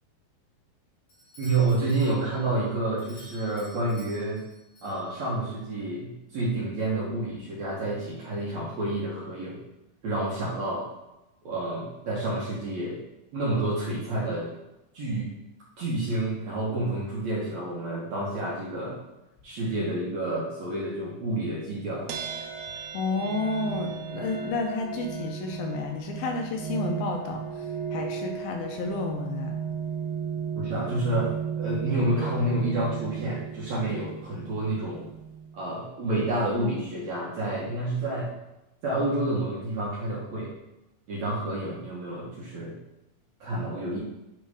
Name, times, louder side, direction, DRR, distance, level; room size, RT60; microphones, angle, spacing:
Doorbell, 1.1-5.6, equal, 45° left, 2.7 m, -53 dB
voice 1, 1.4-4.4 4.8-9.6 10.0-10.8 11.4-13.0 13.3-14.5 14.9-15.3 15.8-19.0 19.4-22.1 30.6-35.1 35.5-38.3 38.8-40.5 41.1-42.8 43.4-44.0, right 2 dB, 65° right, -5 dB, 1.9 m, -29 dB
sound 1, 22.1-35.6, right 7 dB, 80° right, 2.5 m, -35 dB
voice 2, 22.9-27.7 27.9-29.6, left 3 dB, 75° left, 2 dB, 2.4 m, -31 dB
8.9 x 3.2 x 4.8 m, 0.95 s
omnidirectional pair, 4.5 m